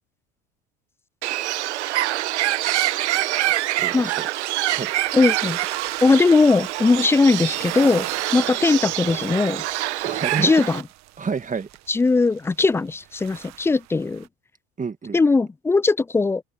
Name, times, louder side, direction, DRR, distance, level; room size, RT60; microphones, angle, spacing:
Bird, 1.2-10.8, right 15 dB, 80° right, 1.0 m, -25 dB
voice 1, 3.8-4.3 4.7-4.9 10.0-10.5 11.2-11.7 14.8-15.2, right 5 dB, 25° right, 2.0 m, -28 dB
sound 1, 4.7-14.3, right 16 dB, 50° right, 1.5 m, -38 dB
voice 2, 5.1-5.6 6.0-8.1 8.3-9.6 10.4-10.8 11.9-14.3 15.1-16.4, left 3 dB, 10° left, 0.3 m, -19 dB
hypercardioid pair, 75°, 34 cm